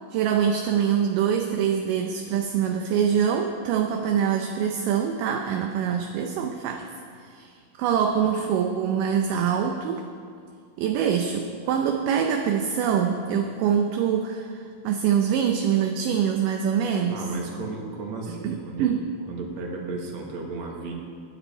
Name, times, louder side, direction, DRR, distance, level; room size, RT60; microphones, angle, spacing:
voice 1, 0.1-6.9 7.2-7.5 7.8-10.0 10.8-17.3 18.3-19.1, right 8 dB, 75° right, 4 dB, 2.2 m, -24 dB
voice 2, 17.1-18.9 19.3-20.9, right 3 dB, 55° right, 0 dB, 2.6 m, -34 dB
19.0 x 9.6 x 4.4 m, 2.3 s
omnidirectional pair, 4.1 m